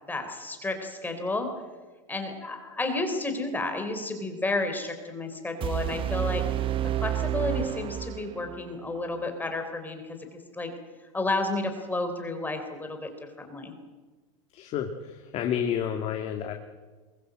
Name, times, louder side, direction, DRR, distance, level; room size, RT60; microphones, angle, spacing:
voice 1, 0.1-1.5 2.1-6.4 7.0-10.7 11.1-13.7, left 2 dB, 10° left, 6 dB, 3.7 m, -31 dB
sound 1, 5.6-8.6, right 12 dB, 30° right, 1.0 m, -29 dB
voice 2, 14.5-16.5, left 8 dB, 40° left, 4 dB, 2.0 m, -30 dB
22.5 x 21.5 x 7.8 m, 1.3 s
hypercardioid pair, 115°, 17 cm